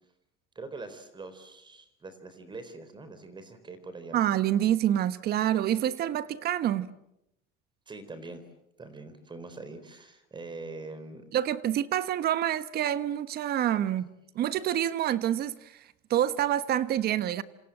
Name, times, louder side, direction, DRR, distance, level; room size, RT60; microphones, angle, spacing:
voice 1, 0.5-4.2 7.9-8.4 8.8-11.2, right 3 dB, 25° right, 4.1 m, -43 dB
voice 2, 4.1-6.9 11.3-14.1 14.3-15.7 16.1-17.4, right 11 dB, 55° right, 1.2 m, -27 dB
28.0 x 26.5 x 7.8 m
cardioid pair, 115°, 20 cm